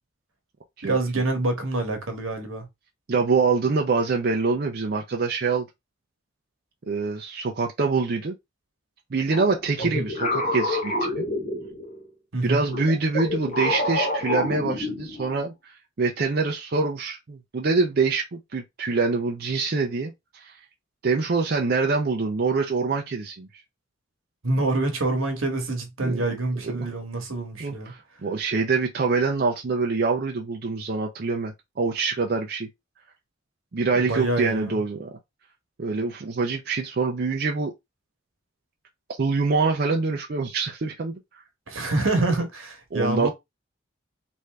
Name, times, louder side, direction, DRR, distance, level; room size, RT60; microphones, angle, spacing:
voice 1, 0.8-2.7 9.8-10.1 12.3-12.6 24.4-27.9 33.9-34.8 41.7-43.3, right 2 dB, 85° right, 1.1 m, -26 dB
voice 2, 3.1-5.7 6.9-8.3 9.1-11.3 12.4-20.6 21.0-23.5 26.0-26.2 26.6-26.9 27.6-32.7 33.7-35.1 35.8-37.7 39.2-41.1 42.9-43.3, right 4 dB, 50° right, 0.5 m, -25 dB
sound 1, 9.3-12.1 12.7-15.4, left 2 dB, 35° left, 0.9 m, -28 dB
3.2 x 2.6 x 3.3 m
head